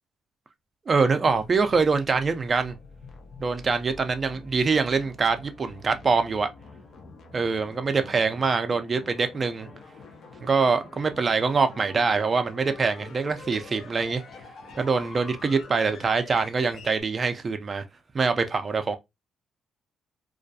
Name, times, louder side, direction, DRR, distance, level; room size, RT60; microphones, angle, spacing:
voice 1, 0.9-2.8 3.4-6.5 7.3-9.7 10.4-14.2 14.8-17.8 18.1-19.0, right 4 dB, 35° right, 0.4 m, -24 dB
sound 1, 1.1-17.0, left 3 dB, 65° left, 0.5 m, -46 dB
2.3 x 2.2 x 2.6 m
cardioid pair, 90°, 0 cm